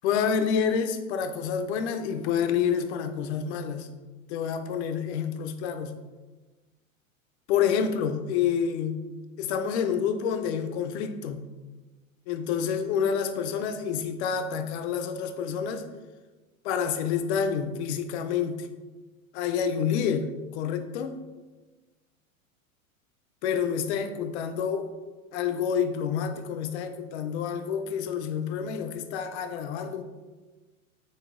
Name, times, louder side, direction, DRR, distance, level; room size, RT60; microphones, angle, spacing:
voice 1, 0.0-3.9 4.3-5.9 7.5-9.1 9.4-11.4 12.3-15.9 16.6-18.7 19.3-21.2 23.4-24.9 25.3-30.0, left 7 dB, 55° left, 8 dB, 0.5 m, -28 dB
4.0 x 3.8 x 2.5 m, 1.2 s
hypercardioid pair, 105°, 42 cm